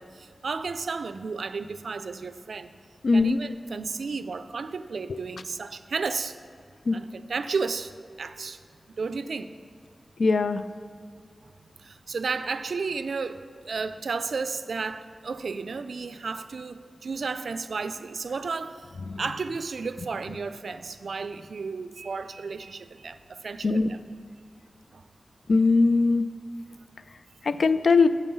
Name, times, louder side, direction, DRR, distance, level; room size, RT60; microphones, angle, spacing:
voice 1, 0.0-2.7 3.1-6.4 6.9-7.9 8.2-8.6 9.0-9.5 11.4-11.5 11.8-18.9 19.2-24.0 24.9-25.0, right 4 dB, 80° right, 11 dB, 0.3 m, -33 dB
voice 2, 3.0-3.4 6.9-7.0 10.2-10.6 23.6-23.9 25.5-26.3 27.4-28.1, left 4 dB, 75° left, 12 dB, 0.3 m, -20 dB
7.1 x 5.5 x 6.8 m, 2.2 s
wide cardioid pair, 75°, 0 cm